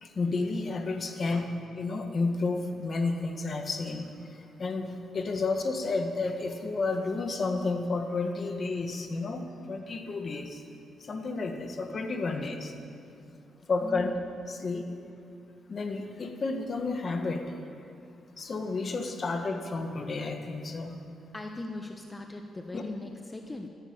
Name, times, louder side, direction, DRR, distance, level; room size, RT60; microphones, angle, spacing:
voice 1, 0.0-10.6 11.0-12.7 13.7-14.1 14.5-14.9 15.7-17.6 18.4-20.9 22.7-22.8, left 3 dB, 45° left, 5 dB, 1.7 m, -31 dB
voice 2, 13.5-14.1 21.3-23.7, left 2 dB, 20° left, 4 dB, 1.1 m, -40 dB
14.0 x 11.5 x 8.9 m, 2.6 s
cardioid pair, 80°, 0 cm